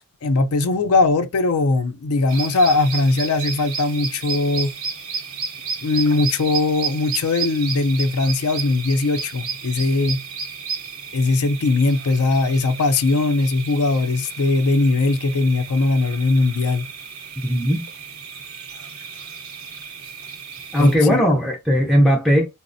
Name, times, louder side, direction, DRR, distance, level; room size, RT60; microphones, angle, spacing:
voice 1, 0.0-4.7 5.8-10.2 11.1-16.9 20.8-21.2, left 3 dB, 85° left, 0.5 m, -20 dB
sound 1, 2.3-21.0, right 6 dB, 70° right, 0.7 m, -33 dB
voice 2, 17.4-17.9 20.7-22.5, equal, ahead, 0.3 m, -17 dB
4.0 x 2.0 x 2.5 m
head